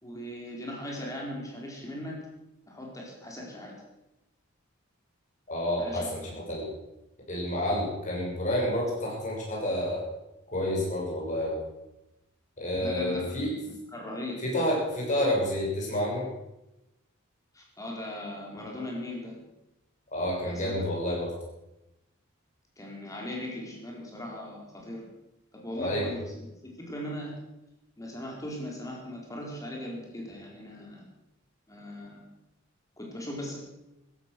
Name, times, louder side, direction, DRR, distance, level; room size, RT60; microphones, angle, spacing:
voice 1, 0.0-2.2 2.7-3.7 5.8-6.4 7.4-7.7 12.8-14.4 17.5-19.4 20.4-20.8 22.8-25.0 25.5-27.3 28.0-31.0 31.7-32.2 33.0-33.6, left 1 dB, 15° left, -2 dB, 4.4 m, -39 dB
voice 2, 5.5-6.2 6.5-6.7 7.3-10.0 10.5-11.6 12.6-13.5 14.5-16.3 20.1-21.3 25.8-26.1, left 1 dB, 35° left, -4 dB, 6.5 m, -29 dB
15.0 x 13.0 x 6.3 m, 0.93 s
head